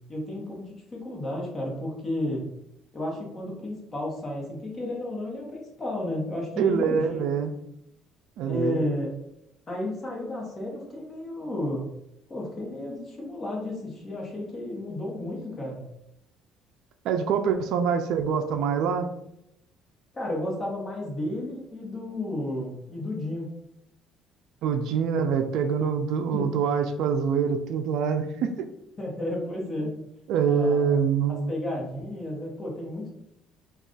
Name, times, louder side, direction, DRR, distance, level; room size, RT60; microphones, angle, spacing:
voice 1, 0.1-2.5 2.9-7.3 8.4-9.1 9.7-11.9 12.3-15.9 20.1-23.5 26.3-26.5 29.0-29.9 30.4-30.9 31.5-33.1, left 1 dB, 25° left, -2 dB, 0.9 m, -32 dB
voice 2, 6.6-7.5 8.4-8.8 17.0-19.1 24.6-28.5 30.3-31.5, right 6 dB, 70° right, 7 dB, 0.3 m, -25 dB
2.4 x 2.3 x 3.8 m, 0.81 s
cardioid pair, 140°, 0 cm